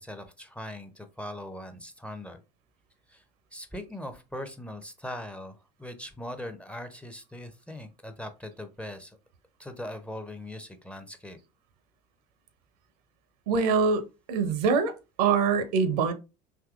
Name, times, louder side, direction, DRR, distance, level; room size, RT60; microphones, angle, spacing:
voice 1, 0.0-2.4 3.1-3.2 3.5-9.2 9.6-11.4, left 1 dB, 5° left, 0.5 m, -40 dB
voice 2, 13.5-16.1, right 5 dB, 70° right, 0.6 m, -24 dB
3.5 x 2.8 x 2.3 m
figure-of-eight pair, 65°, 21 cm